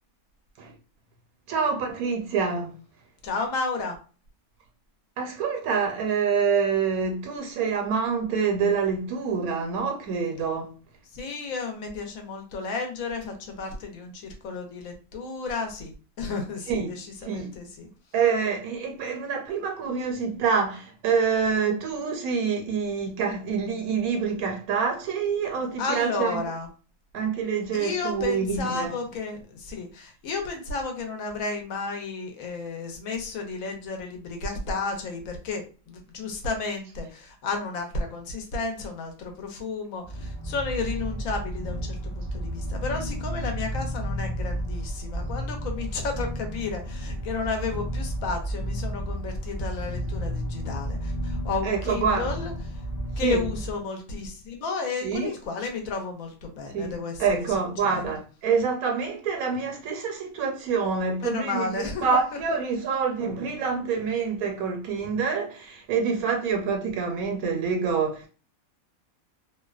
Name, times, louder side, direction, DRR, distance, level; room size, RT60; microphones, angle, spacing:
voice 1, 1.5-2.7 5.2-10.8 16.7-16.9 17.2-17.5 18.1-26.4 27.1-28.9 51.6-52.3 53.2-53.4 55.0-55.3 56.7-68.3, right 5 dB, 80° right, 1.1 m, -26 dB
voice 2, 3.2-4.0 11.1-15.9 16.2-17.9 25.8-26.7 27.7-52.8 53.2-58.1 61.2-62.0, left 4 dB, 70° left, 1.0 m, -32 dB
sound 1, 40.0-53.7, equal, 20° left, 0.6 m, -32 dB
2.6 x 2.1 x 2.3 m
omnidirectional pair, 1.5 m